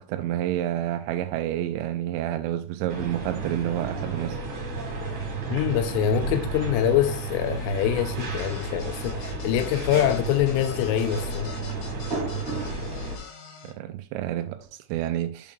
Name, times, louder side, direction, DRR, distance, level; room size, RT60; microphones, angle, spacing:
voice 1, 0.0-4.4 13.6-15.5, right 12 dB, 90° right, 2.5 m, -29 dB
sound 1, 2.9-13.2, right 3 dB, 50° right, 2.9 m, -32 dB
voice 2, 5.5-11.5, left 10 dB, 90° left, 3.2 m, -24 dB
sound 2, 8.2-13.7, left 5 dB, 75° left, 3.9 m, -45 dB
8.7 x 7.0 x 2.4 m
omnidirectional pair, 5.6 m